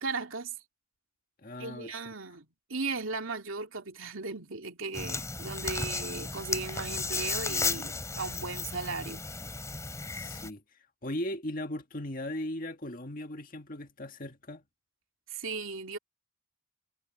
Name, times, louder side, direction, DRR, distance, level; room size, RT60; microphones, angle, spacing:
voice 1, 0.0-0.5 1.6-9.2 15.3-16.0, right 4 dB, 80° right, 2.5 m, -37 dB
voice 2, 1.4-1.9 10.1-10.6 11.0-14.6, left 1 dB, 45° left, 1.8 m, -37 dB
sound 1, 4.9-10.5, left 4 dB, 15° left, 3.3 m, -34 dB
head